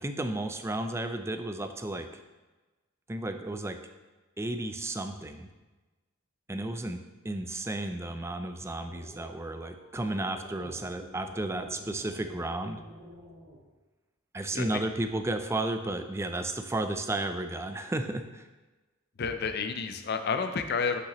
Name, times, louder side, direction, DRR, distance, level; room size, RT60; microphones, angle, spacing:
voice 1, 0.0-2.1 3.1-3.8 4.4-5.5 6.5-12.8 14.3-18.5, right 2 dB, 15° right, 7 dB, 0.4 m, -33 dB
sound 1, 8.8-13.6, equal, 30° right, 2.3 m, -50 dB
voice 2, 14.5-14.8 19.2-21.0, left 5 dB, 50° left, 7 dB, 0.6 m, -30 dB
8.2 x 5.8 x 3.0 m, 1.2 s
head